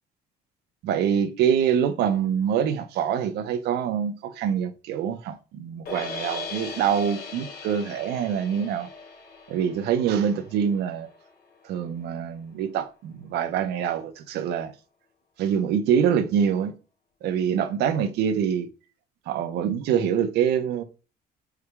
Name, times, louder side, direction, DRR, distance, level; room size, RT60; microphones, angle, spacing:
voice 1, 0.8-8.9 9.5-11.1 11.6-14.7 15.4-16.7 17.2-18.7 19.3-20.8, right 8 dB, 80° right, 0.8 m, -25 dB
sound 1, 5.9-12.0, left 4 dB, 65° left, 2.5 m, -39 dB
4.9 x 3.4 x 2.3 m
cardioid pair, 110°, 17 cm